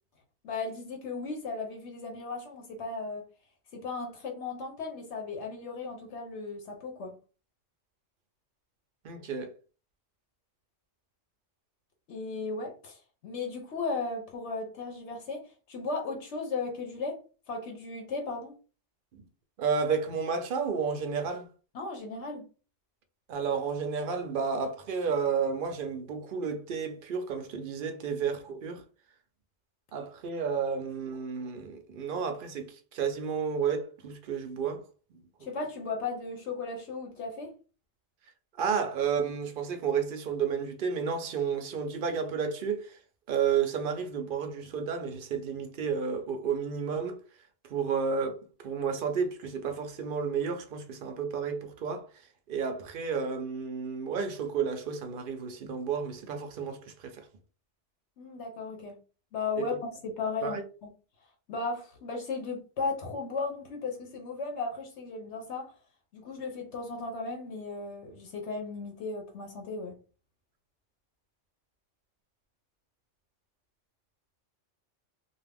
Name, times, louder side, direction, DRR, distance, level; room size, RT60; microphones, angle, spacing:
voice 1, 0.4-3.2 3.7-7.1 12.1-17.2 17.5-18.6 21.7-22.5 35.4-37.5 58.2-59.0 59.3-59.7 60.0-60.9 61.5-65.7 66.1-70.0, left 4 dB, 70° left, 1.0 m, -36 dB
voice 2, 9.0-9.5 19.1-19.2 19.6-21.5 23.3-28.8 29.9-34.8 35.1-35.5 38.6-43.0 43.3-47.2 47.7-52.1 52.5-57.2 59.6-59.7 60.4-60.6, right 6 dB, 60° right, 0.6 m, -31 dB
2.5 x 2.3 x 3.3 m
omnidirectional pair, 1.3 m